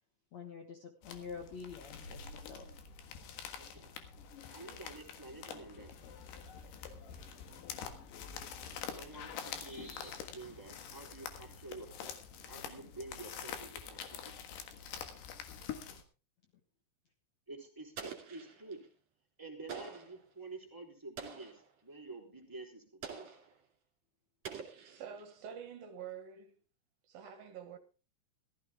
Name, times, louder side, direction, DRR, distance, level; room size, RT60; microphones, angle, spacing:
voice 1, 0.3-2.7, left 5 dB, 60° left, 2.0 m, -47 dB
sound 1, 1.0-16.0, left 7 dB, 80° left, 3.6 m, -46 dB
voice 2, 3.5-3.9 4.5-5.9 8.9-12.1 12.5-14.5 17.5-18.8 19.4-23.3, right 3 dB, 5° right, 2.8 m, -49 dB
sound 2, 6.0-11.1, left 4 dB, 40° left, 3.2 m, -59 dB
Explosion, 18.0-18.9 19.7-20.2 21.2-21.7 23.0-23.6 24.4-25.3, right 6 dB, 45° right, 3.5 m, -46 dB
voice 3, 24.7-26.6 27.0-27.8, right 8 dB, 70° right, 2.7 m, -47 dB
15.0 x 14.5 x 3.5 m
omnidirectional pair, 4.8 m